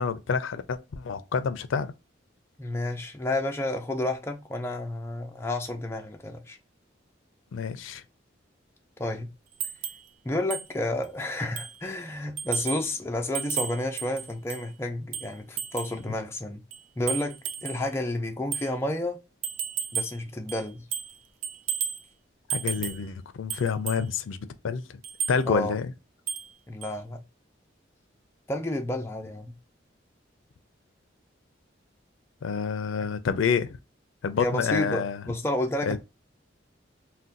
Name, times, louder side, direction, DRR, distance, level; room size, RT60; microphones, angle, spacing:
voice 1, 0.0-1.9 7.5-8.0 22.5-24.4 24.6-24.8 25.3-25.9 32.4-33.8 34.2-35.2 35.9-36.0, left 6 dB, 85° left, 0.4 m, -28 dB
voice 2, 2.6-6.6 9.0-9.3 10.2-16.6 17.0-19.2 19.9-20.9 25.5-25.7 26.7-27.2 28.5-29.5 33.0-33.1 34.4-36.0, left 1 dB, 15° left, 0.4 m, -31 dB
sound 1, 9.6-10.1 10.5-10.7 11.0-11.1 11.6-11.8 12.4-12.9 13.3-14.7 15.1-16.0 16.7-17.9 18.5-18.7 19.4-20.2 20.5-21.2 21.4-22.0 22.5-23.1 23.5-24.1 25.0-25.4 26.3-26.5 26.8-26.9, right 8 dB, 80° right, 0.4 m, -33 dB
2.6 x 2.2 x 3.7 m
head